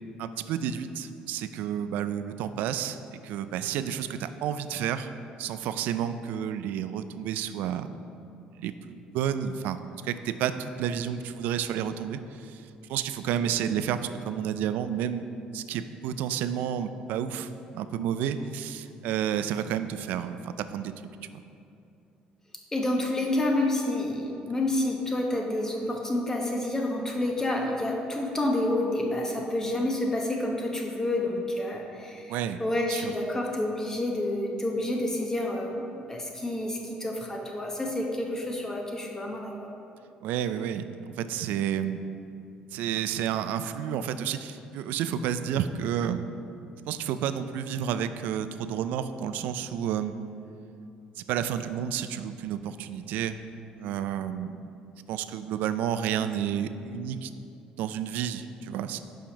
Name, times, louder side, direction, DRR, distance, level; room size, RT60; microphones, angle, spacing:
voice 1, 0.2-5.1 5.4-7.9 8.5-9.8 10.0-15.3 15.5-20.9 21.2-21.3 32.3-32.6 32.9-33.1 40.2-42.0 42.7-46.4 46.9-50.1 51.2-53.4 53.8-54.8 55.1-57.3 57.8-59.0, right 9 dB, 75° right, 11 dB, 0.3 m, -31 dB
voice 2, 22.7-39.7, left 1 dB, 20° left, 0 dB, 0.9 m, -29 dB
5.7 x 5.0 x 5.1 m, 2.7 s
supercardioid pair, 90°, 3 cm